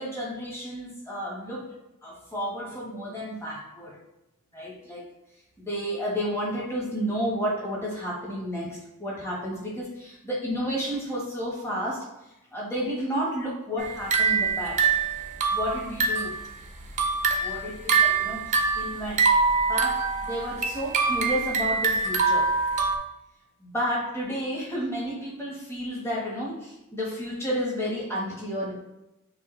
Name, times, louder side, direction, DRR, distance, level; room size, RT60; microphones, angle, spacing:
voice 1, 0.0-4.0 4.5-5.0 5.6-12.1 12.5-14.8 15.5-16.3 17.4-19.2 19.6-22.5 23.6-28.7, equal, 10° left, -4 dB, 1.2 m, -31 dB
sound 1, 13.8-16.4 16.8-23.0, right 4 dB, 35° right, 0.5 m, -24 dB
6.7 x 2.4 x 3.1 m, 0.94 s
head